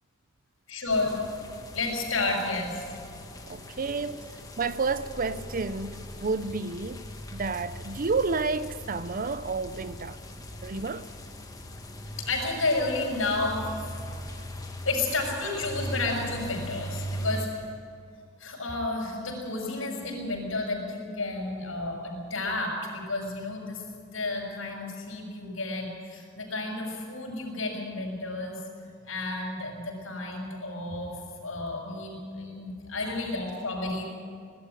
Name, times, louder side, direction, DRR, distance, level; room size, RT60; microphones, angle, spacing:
voice 1, 0.7-1.1 1.7-2.8 12.2-13.9 14.8-17.7 18.4-23.8 24.1-28.6 29.1-34.0, left 2 dB, 85° left, 6.5 m, -31 dB
sound 1, 0.9-17.5, equal, 20° left, 1.5 m, -40 dB
voice 2, 3.5-7.1 7.3-10.2 10.6-11.1, right 4 dB, 45° right, 0.6 m, -30 dB
20.0 x 13.0 x 9.8 m
head